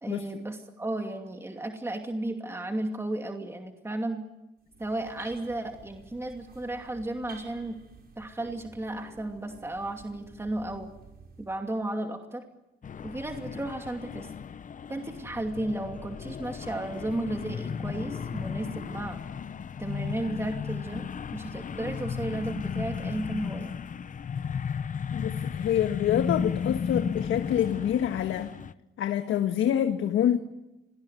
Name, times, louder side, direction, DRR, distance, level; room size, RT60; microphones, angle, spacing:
voice 1, 0.0-4.2 4.8-7.8 8.2-10.9 11.4-12.4 13.0-14.3 14.9-19.2 19.8-21.0 21.3-23.7, right 1 dB, 10° right, 4 dB, 2.6 m, -34 dB
sound 1, 4.6-11.6, right 5 dB, 50° right, 5.8 m, -51 dB
sound 2, 12.8-28.7, left 6 dB, 40° left, 0.9 m, -34 dB
voice 2, 25.1-28.5 29.0-30.4, left 10 dB, 80° left, 8 dB, 1.5 m, -26 dB
25.5 x 19.0 x 9.4 m, 0.97 s
cardioid pair, 90°, 20 cm